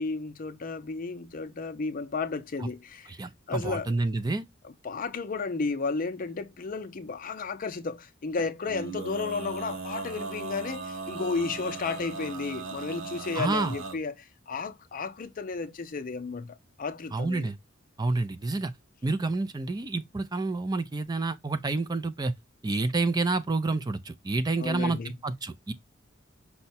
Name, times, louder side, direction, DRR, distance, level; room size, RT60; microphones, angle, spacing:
voice 1, 0.0-3.1 3.5-3.9 4.6-17.5 24.6-25.1, left 4 dB, 45° left, 0.5 m, -33 dB
voice 2, 3.1-4.4 13.3-13.7 17.1-17.6 18.0-18.7 19.0-22.3 22.6-25.7, right 3 dB, 20° right, 0.4 m, -29 dB
Male singing, 8.6-14.0, right 3 dB, 80° right, 1.2 m, -37 dB
5.5 x 2.1 x 4.1 m
head